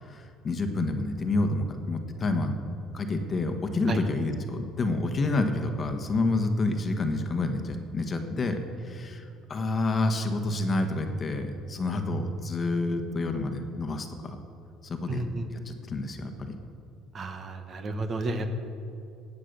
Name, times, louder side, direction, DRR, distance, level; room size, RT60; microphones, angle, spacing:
voice 1, 0.0-2.6 2.9-14.4 14.8-15.2 15.6-16.6, left 2 dB, 30° left, 6 dB, 1.4 m, -29 dB
voice 2, 15.1-15.5 17.1-18.6, right 2 dB, 35° right, 7 dB, 1.3 m, -32 dB
18.5 x 8.5 x 6.8 m, 2.6 s
cardioid pair, 130°, 0 cm